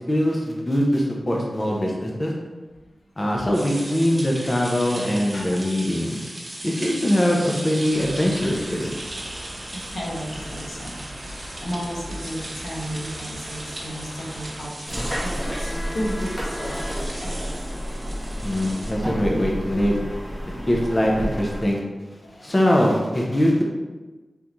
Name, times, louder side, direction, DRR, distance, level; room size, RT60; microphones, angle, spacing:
voice 1, 0.1-2.3 3.2-6.2 6.6-8.9 18.4-20.0 20.7-21.8 22.4-23.6, equal, 20° left, -2 dB, 0.6 m, -22 dB
sound 1, 3.5-18.9, right 1 dB, 35° right, 0.7 m, -37 dB
voice 2, 5.3-5.7 9.7-11.0 11.3-17.4 22.2-22.3, equal, 80° left, -3 dB, 0.9 m, -34 dB
sound 2, 7.9-14.7, equal, 75° right, 0.9 m, -39 dB
sound 3, 14.8-21.6, equal, ahead, 1.3 m, -30 dB
3.9 x 3.6 x 3.0 m, 1.2 s
wide cardioid pair, 105°, 0 cm